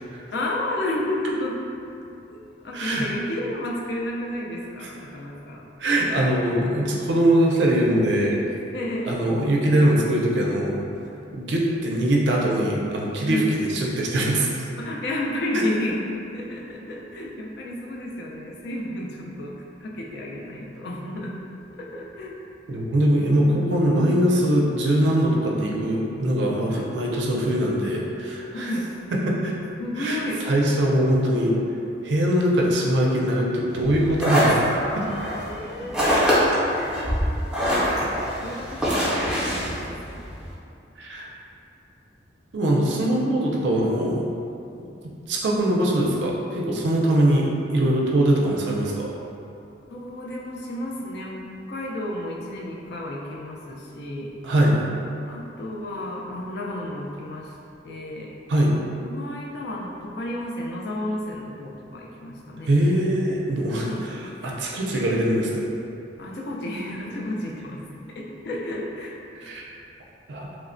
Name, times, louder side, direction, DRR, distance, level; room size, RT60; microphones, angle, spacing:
voice 1, 0.3-1.6 2.3-5.7 8.7-9.1 13.3-13.5 14.8-16.0 16.3-21.4 21.7-22.3 23.1-23.7 26.7-26.8 28.5-28.9 29.8-30.5 35.3-36.4 36.9-37.2 38.4-40.2 49.9-54.3 55.3-57.5 57.8-58.3 59.0-62.7 63.8-64.1 66.2-69.2, left 1 dB, 60° left, -2 dB, 0.4 m, -32 dB
voice 2, 2.7-3.1 4.8-4.9 5.8-8.4 9.1-10.8 11.3-14.7 22.7-28.7 29.1-29.5 30.0-31.5 32.0-34.6 34.9-35.1 36.0-36.2 41.0-41.3 42.5-44.2 45.3-47.5 47.7-49.1 54.4-54.8 58.5-58.8 62.7-63.9 64.4-65.6 69.4-69.7 70.3-70.5, right 1 dB, 70° right, -2 dB, 0.4 m, -22 dB
sound 1, 33.8-40.5, equal, 5° right, 0.5 m, -24 dB
3.1 x 2.1 x 2.5 m, 2.7 s
head